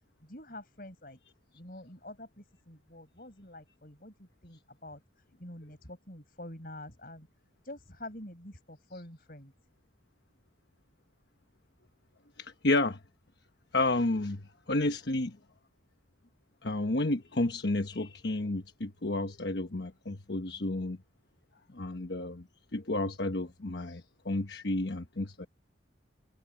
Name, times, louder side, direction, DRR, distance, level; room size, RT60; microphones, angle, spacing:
voice 1, 0.2-1.2 1.5-5.0 5.4-7.3 7.7-9.5, left 1 dB, 50° left, 7.0 m, -47 dB
voice 2, 12.4-13.0 13.7-14.4 14.7-15.4 16.6-21.0 21.7-22.4 22.7-25.5, left 2 dB, 65° left, 1.2 m, -31 dB
head